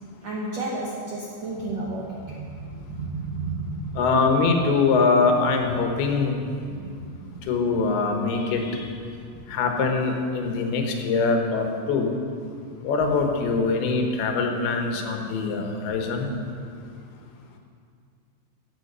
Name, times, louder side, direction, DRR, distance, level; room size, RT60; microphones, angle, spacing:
voice 1, 0.0-3.9 6.6-7.5 9.3-9.6, right 2 dB, 75° right, -3 dB, 1.6 m, -33 dB
voice 2, 4.0-6.4 7.5-8.9 9.5-12.2 12.8-16.3, left 4 dB, 75° left, 3 dB, 3.0 m, -23 dB
15.0 x 8.7 x 5.4 m, 2.2 s
omnidirectional pair, 4.6 m